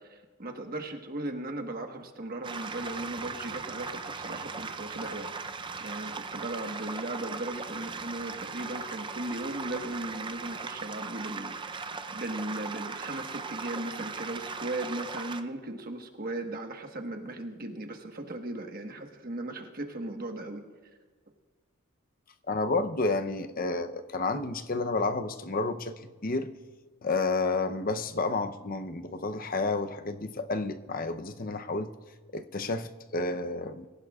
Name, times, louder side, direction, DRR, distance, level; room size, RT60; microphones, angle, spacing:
voice 1, 0.0-5.3 5.8-20.6, right 1 dB, 45° right, 4 dB, 1.3 m, -37 dB
sound 1, 2.4-15.4, right 4 dB, 25° right, 0.5 m, -38 dB
voice 2, 22.5-26.5 27.0-31.9 32.3-33.9, left 3 dB, 40° left, 9 dB, 0.7 m, -30 dB
25.0 x 15.5 x 2.4 m, 1.3 s
head